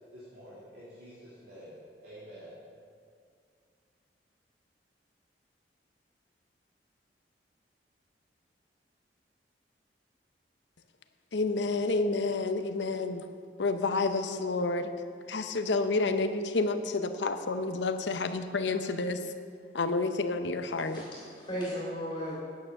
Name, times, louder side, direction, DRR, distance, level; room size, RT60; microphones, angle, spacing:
voice 1, 0.1-1.8 2.0-2.5, equal, 55° right, -9 dB, 2.5 m, -48 dB
voice 2, 11.3-13.2 13.6-14.9 15.3-19.2 19.7-21.0, left 3 dB, 75° left, 8 dB, 0.7 m, -29 dB
voice 3, 20.8-22.3, equal, 25° left, -7 dB, 3.1 m, -36 dB
9.5 x 8.6 x 6.4 m, 2.2 s
head